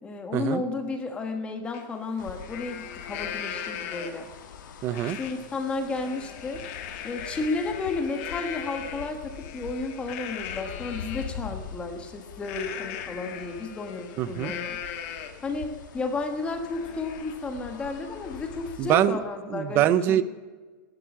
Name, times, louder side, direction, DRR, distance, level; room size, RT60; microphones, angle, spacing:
voice 1, 0.0-4.3 5.2-6.6 7.0-14.8 15.4-20.2, left 3 dB, 10° left, 5 dB, 1.3 m, -32 dB
Livestock farm animals working animals, 1.7-1.8 2.2-4.3 4.9-5.3 5.7-11.3 12.4-15.5 15.9-16.0 16.4-18.7, left 9 dB, 40° left, 1.7 m, -39 dB
sound 1, 2.2-19.1, left 8 dB, 75° left, 2.5 m, -44 dB
voice 2, 4.8-5.2 14.2-14.5 18.8-19.2 19.5-20.2, right 11 dB, 20° right, 16 dB, 0.5 m, -23 dB
16.5 x 11.5 x 7.2 m, 1.4 s
supercardioid pair, 180°, 11 cm